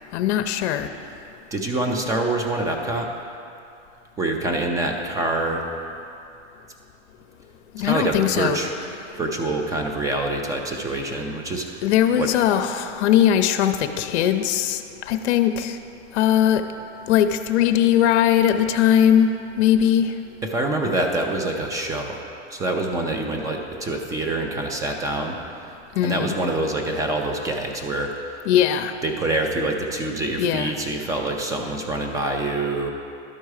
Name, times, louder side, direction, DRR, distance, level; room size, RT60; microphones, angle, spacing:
voice 1, 0.1-0.9 7.7-8.6 11.8-15.8 16.1-16.6 17.1-20.1 26.0-26.4 28.5-28.9 30.4-30.7, left 10 dB, 65° left, 8 dB, 0.6 m, -20 dB
voice 2, 1.5-3.1 4.2-5.6 7.8-8.7 9.2-11.8 12.2-12.3 20.4-22.2 22.5-25.4 25.7-25.8 26.0-28.1 29.0-32.9, right 2 dB, 10° right, 3 dB, 0.4 m, -25 dB
12.0 x 4.5 x 4.8 m, 2.7 s
supercardioid pair, 140°, 36 cm